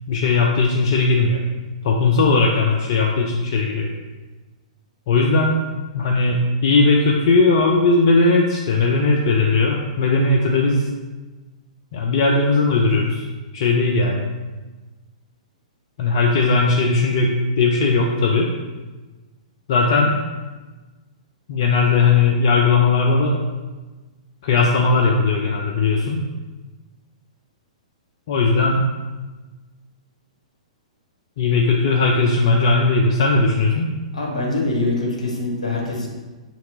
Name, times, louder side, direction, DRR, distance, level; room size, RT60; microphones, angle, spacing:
voice 1, 0.1-1.4 1.8-3.9 5.1-5.6 5.9-10.9 11.9-13.2 13.5-14.3 16.0-18.5 19.7-20.2 21.5-23.4 24.4-26.2 28.3-28.9 31.4-33.9, left 3 dB, 45° left, 0 dB, 0.4 m, -18 dB
voice 2, 34.1-36.1, left 2 dB, 70° left, -2 dB, 1.0 m, -24 dB
3.2 x 2.9 x 3.8 m, 1.3 s
figure-of-eight pair, 110°, 4 cm